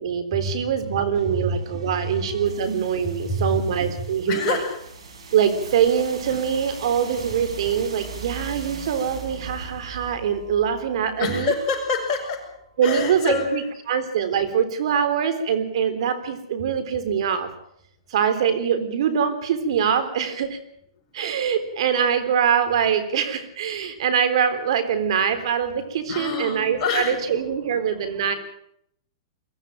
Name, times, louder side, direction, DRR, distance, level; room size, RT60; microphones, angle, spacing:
voice 1, 0.0-4.6 5.3-11.5 12.8-17.5 18.1-20.6 21.1-28.4, right 7 dB, 65° right, 10 dB, 3.7 m, -23 dB
sound 1, 0.7-12.6, right 4 dB, 90° right, 5.6 m, -40 dB
voice 2, 3.3-3.6 4.3-4.8 11.2-12.5 12.8-13.6 26.1-27.4 27.9-28.4, left 4 dB, 30° left, 0 dB, 7.4 m, -26 dB
23.0 x 14.5 x 9.0 m, 0.73 s
hypercardioid pair, 145°, 3 cm